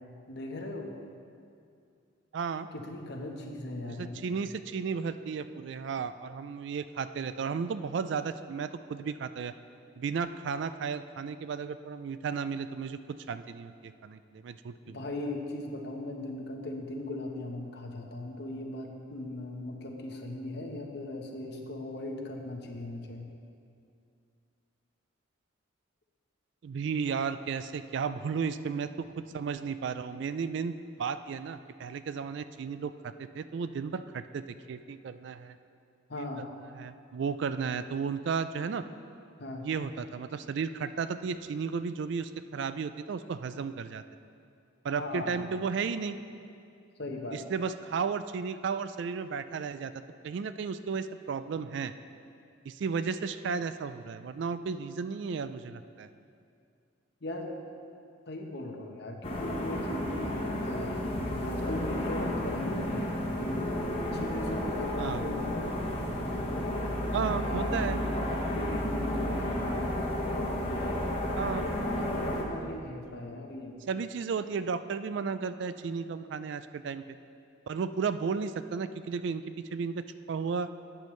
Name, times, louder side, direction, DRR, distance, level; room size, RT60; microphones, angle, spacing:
voice 1, 0.3-0.9 2.7-4.2 14.9-23.3 36.1-36.5 39.4-39.7 45.0-45.5 47.0-47.4 57.2-57.6 58.3-63.6 64.0-65.9 67.2-69.9 70.8-71.1 71.6-73.8, left 1 dB, 55° left, 2 dB, 1.0 m, -39 dB
voice 2, 2.3-2.7 4.0-9.5 10.0-13.0 13.3-15.0 26.6-30.7 31.0-32.9 33.2-34.4 34.7-35.6 36.2-36.3 36.8-38.8 39.6-44.0 44.8-46.2 47.3-49.9 50.2-51.9 52.7-56.1 65.0-65.2 67.1-68.0 71.3-71.7 73.9-77.0 77.7-79.4 79.7-80.7, right 5 dB, 60° right, 12 dB, 0.3 m, -34 dB
sound 1, 59.2-72.4, left 1 dB, 30° left, 1.1 m, -32 dB
11.5 x 8.8 x 3.2 m, 2.4 s
head